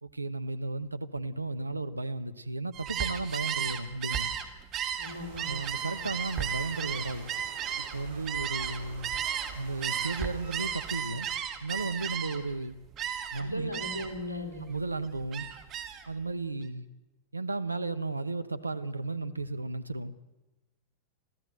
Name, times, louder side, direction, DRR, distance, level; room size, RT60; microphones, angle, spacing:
voice 1, 0.0-4.3 5.5-7.3 7.8-9.2 9.5-11.3 11.6-12.8 13.3-13.7 14.7-15.5 16.1-16.8 17.3-20.1, right 3 dB, 80° right, 1.0 m, -34 dB
Gull seagull, 2.7-9.5 9.8-12.5 13.0-13.4 13.7-14.2 14.6-16.1, right 9 dB, 30° right, 2.2 m, -34 dB
voice 2, 5.0-5.5 13.4-14.7, left 1 dB, 85° left, 3.6 m, -37 dB
sound 1, 5.1-11.0, right 5 dB, 60° right, 4.4 m, -47 dB
26.0 x 15.5 x 7.8 m
figure-of-eight pair, 90°, 0 cm